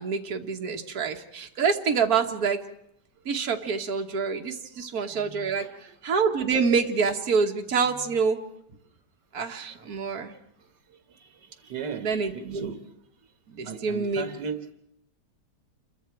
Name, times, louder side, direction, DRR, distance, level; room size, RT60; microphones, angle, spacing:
voice 1, 0.0-2.6 3.3-8.4 9.3-10.3 11.9-12.8 13.5-14.2, right 5 dB, 60° right, 3 dB, 2.0 m, -27 dB
voice 2, 5.5-6.0 11.2-11.3 11.6-12.1 12.3-12.8 13.6-14.6, right 6 dB, 80° right, 8 dB, 1.9 m, -36 dB
28.5 x 22.5 x 4.6 m, 0.77 s
omnidirectional pair, 1.8 m